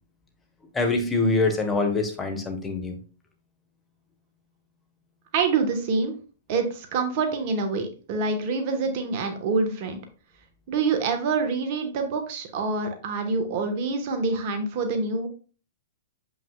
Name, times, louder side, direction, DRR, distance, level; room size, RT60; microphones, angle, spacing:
voice 1, 0.7-3.0, left 3 dB, 15° left, 4 dB, 1.5 m, -24 dB
voice 2, 5.3-6.1 6.5-10.0 10.7-15.3, right 4 dB, 45° right, 5 dB, 1.5 m, -26 dB
7.5 x 5.4 x 2.4 m, 0.37 s
hypercardioid pair, 115°, 0 cm